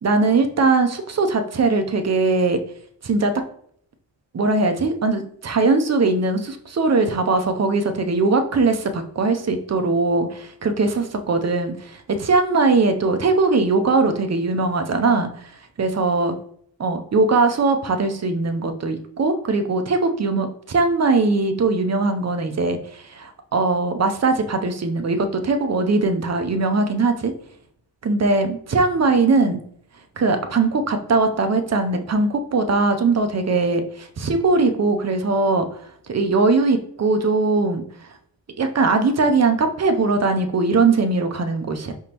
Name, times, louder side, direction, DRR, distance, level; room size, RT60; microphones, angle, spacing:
voice 1, 0.0-2.6 3.0-3.4 4.3-15.5 15.8-16.4 16.8-27.3 28.0-29.6 30.2-35.7 36.1-37.8 38.6-41.9, right 3 dB, 35° right, 6 dB, 0.5 m, -20 dB
5.0 x 3.6 x 2.9 m, 0.63 s
wide cardioid pair, 110°, 45 cm